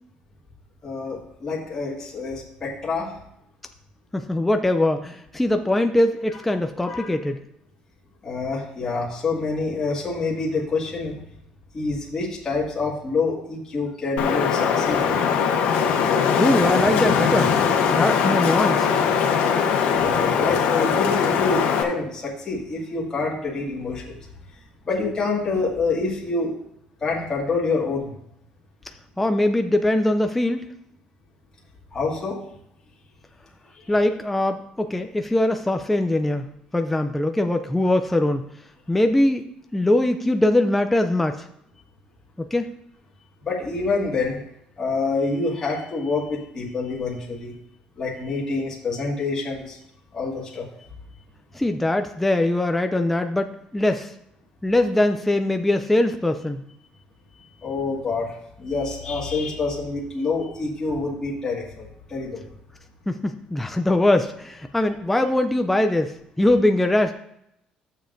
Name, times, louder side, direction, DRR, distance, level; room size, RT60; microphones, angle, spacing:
voice 1, 0.8-3.1 6.8-7.1 8.2-11.2 11.7-15.2 19.9-24.2 24.9-26.5 27.0-28.2 31.9-32.4 33.7-33.8 43.4-44.4 44.8-47.5 48.0-49.8 50.1-50.7 57.6-62.5, left 3 dB, 25° left, -5 dB, 1.8 m, -27 dB
voice 2, 4.1-7.4 16.4-17.5 17.9-18.9 29.2-30.7 33.9-38.5 38.9-39.4 39.7-41.5 42.4-42.7 51.5-54.1 54.6-56.6 63.1-67.1, left 1 dB, 5° left, 6 dB, 0.3 m, -22 dB
Wind, 14.2-21.8, left 7 dB, 85° left, 1.1 m, -21 dB
12.0 x 7.1 x 2.5 m, 0.77 s
cardioid pair, 155°, 3 cm